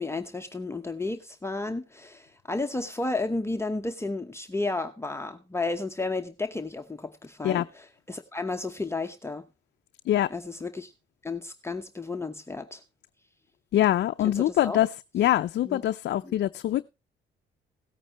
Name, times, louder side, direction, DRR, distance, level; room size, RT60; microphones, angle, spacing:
voice 1, 0.0-9.5 10.3-10.9 11.2-12.8 14.2-14.8 15.6-15.8 16.2-16.3, left 3 dB, 15° left, 0.9 m, -32 dB
voice 2, 13.7-14.9 15.1-16.9, left 12 dB, 60° left, 0.5 m, -24 dB
17.5 x 8.9 x 3.0 m
cardioid pair, 90°, 20 cm